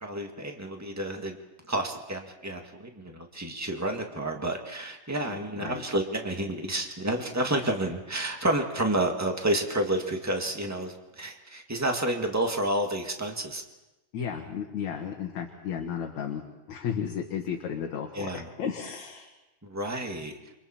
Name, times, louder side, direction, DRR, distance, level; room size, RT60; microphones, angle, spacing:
voice 1, 0.0-1.4 1.7-13.6 18.1-18.5 19.6-20.4, right 1 dB, 10° right, 3 dB, 0.8 m, -30 dB
voice 2, 5.2-5.8 14.1-16.4 16.7-19.3, left 7 dB, 65° left, 1 dB, 2.8 m, -34 dB
29.0 x 25.5 x 4.4 m, 1.0 s
omnidirectional pair, 3.7 m